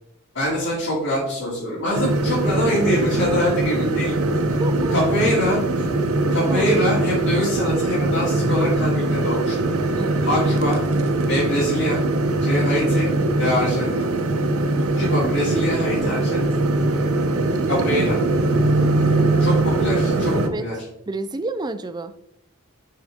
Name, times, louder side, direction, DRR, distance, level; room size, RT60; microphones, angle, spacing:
voice 1, 0.3-4.2 4.9-5.9 6.3-9.6 10.2-10.8 11.3-12.0 12.4-13.1 13.4-14.1 14.9-16.4 17.7-18.2 19.4-20.3 20.6-20.8, equal, 75° left, -10 dB, 2.8 m, -24 dB
sound 1, 1.9-20.5, right 2 dB, 80° right, 0.7 m, -21 dB
voice 2, 4.6-5.0 6.5-6.7 10.0-10.2 19.0-19.4 20.3-20.7 21.1-22.1, right 2 dB, 20° right, 11 dB, 0.4 m, -30 dB
6.5 x 6.0 x 3.6 m, 0.78 s
head